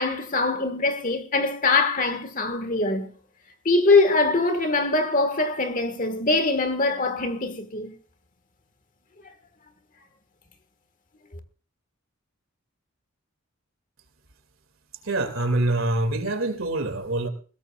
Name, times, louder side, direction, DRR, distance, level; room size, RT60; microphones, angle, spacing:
voice 1, 0.0-3.1 3.6-7.9, left 3 dB, 35° left, 1.6 m, -23 dB
voice 2, 15.0-17.3, right 2 dB, 70° right, 2.4 m, -25 dB
21.0 x 17.0 x 2.4 m
head